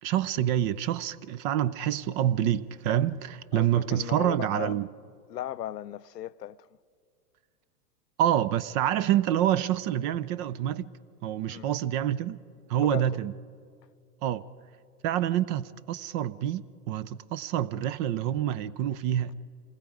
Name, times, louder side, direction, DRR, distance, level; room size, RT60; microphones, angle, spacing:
voice 1, 0.0-4.9 8.2-10.9 11.2-12.4 12.7-13.3 14.2-14.4 15.0-19.3, right 11 dB, 30° right, 0.4 m, -27 dB
voice 2, 3.5-4.8 5.3-6.7 11.5-11.7 12.8-13.2, left 12 dB, 85° left, 0.6 m, -37 dB
27.5 x 19.5 x 4.9 m
hypercardioid pair, 100°, 47 cm